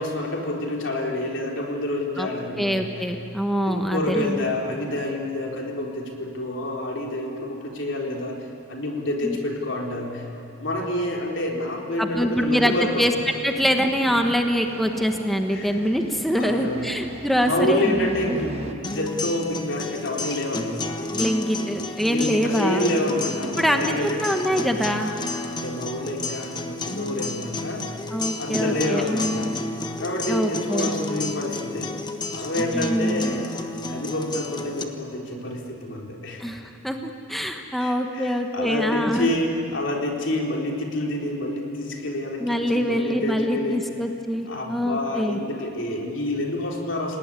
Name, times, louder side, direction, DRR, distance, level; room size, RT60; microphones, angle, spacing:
voice 1, 0.0-3.1 3.6-10.3 10.6-13.1 15.5-15.7 16.4-21.0 22.0-24.6 25.5-27.9 28.4-29.5 30.0-31.9 32.3-33.4 33.9-36.4 37.8-43.9 44.5-47.2, left 1 dB, 70° left, 0 dB, 3.9 m, -28 dB
voice 2, 2.6-4.5 9.2-9.4 12.0-13.1 13.4-18.4 21.1-22.9 23.6-25.1 28.1-29.5 30.3-30.9 32.7-33.3 36.4-39.3 42.4-45.4, equal, ahead, 3 dB, 1.2 m, -24 dB
sound 1, 12.7-18.7, right 1 dB, 30° right, 1.5 m, -39 dB
sound 2, 18.8-34.8, left 3 dB, 25° left, 1.4 m, -32 dB
28.0 x 18.5 x 9.9 m, 2.9 s
head